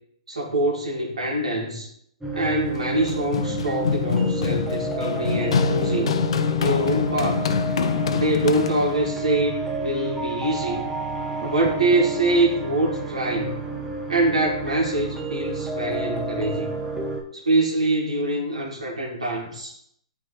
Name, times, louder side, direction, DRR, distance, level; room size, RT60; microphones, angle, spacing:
voice 1, 0.3-1.9 2.3-6.2 6.6-7.5 8.1-10.8 11.4-13.6 14.1-16.7 17.3-19.8, right 2 dB, 85° right, -2 dB, 1.7 m, -24 dB
sound 1, 2.2-17.2, right 2 dB, 5° right, 0.8 m, -30 dB
Run, 2.7-9.1, left 6 dB, 60° left, 0.5 m, -25 dB
9.8 x 3.4 x 3.1 m, 0.71 s
hypercardioid pair, 135°, 3 cm